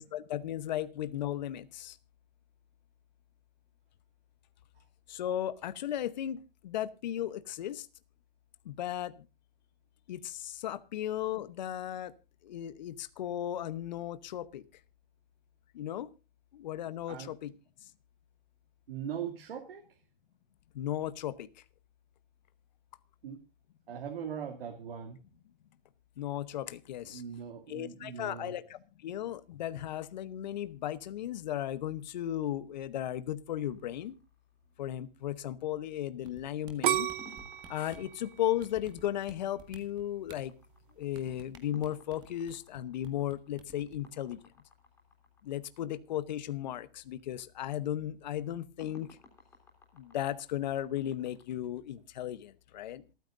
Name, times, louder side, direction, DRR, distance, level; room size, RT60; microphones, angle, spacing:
voice 1, 0.0-2.0 5.1-7.9 8.6-9.3 10.1-12.1 12.4-14.6 15.7-16.1 16.5-17.5 17.8-17.9 20.7-21.5 26.2-27.2 27.7-34.2 34.8-37.1 37.7-40.5 41.0-44.4 45.4-49.1 49.9-53.0, left 11 dB, 50° left, 14 dB, 0.9 m, -36 dB
voice 2, 18.9-19.8 23.2-23.4 23.9-25.2 27.0-28.6, right 8 dB, 75° right, 3 dB, 2.7 m, -40 dB
sound 1, 33.6-35.0 37.2-45.8 48.8-51.4, left 2 dB, 10° left, 3.5 m, -59 dB
sound 2, 36.2-38.1 38.6-39.3 39.6-40.4 41.1-42.8 43.0-43.3 43.6-43.9, right 5 dB, 15° right, 1.8 m, -51 dB
sound 3, 36.8-39.7 40.3-40.7, right 11 dB, 60° right, 0.6 m, -33 dB
27.0 x 9.3 x 2.6 m, 0.30 s
hypercardioid pair, 175°, 30 cm